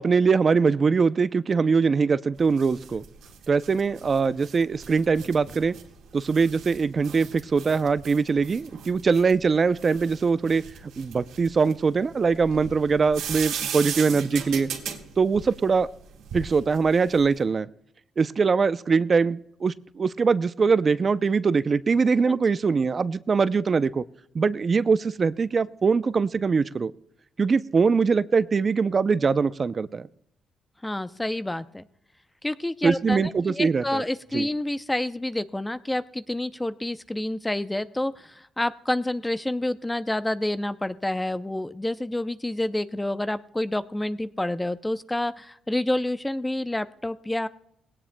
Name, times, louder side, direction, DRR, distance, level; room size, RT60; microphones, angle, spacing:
voice 1, 0.0-3.0 3.5-5.7 6.1-10.6 11.0-14.7 15.2-15.9 16.3-17.7 18.2-24.0 24.3-26.9 27.4-30.1 32.8-34.0 34.3-34.5, right 5 dB, 40° right, 15 dB, 0.5 m, -22 dB
sound 1, 2.4-17.4, right 7 dB, 85° right, 1.7 m, -38 dB
voice 2, 30.8-31.8 32.4-47.5, left 1 dB, 10° left, 12 dB, 0.5 m, -28 dB
20.0 x 17.5 x 2.2 m, 0.77 s
cardioid pair, 90°, 0 cm